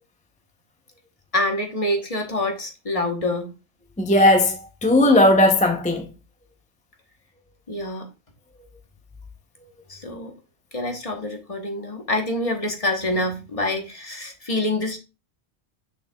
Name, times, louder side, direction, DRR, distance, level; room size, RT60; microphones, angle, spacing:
voice 1, 1.3-3.5 7.7-8.1 9.9-10.3 10.7-15.0, left 1 dB, 35° left, 1.2 m, -26 dB
voice 2, 4.0-6.1, left 1 dB, 10° left, 0.6 m, -17 dB
6.5 x 6.5 x 2.3 m
omnidirectional pair, 1.1 m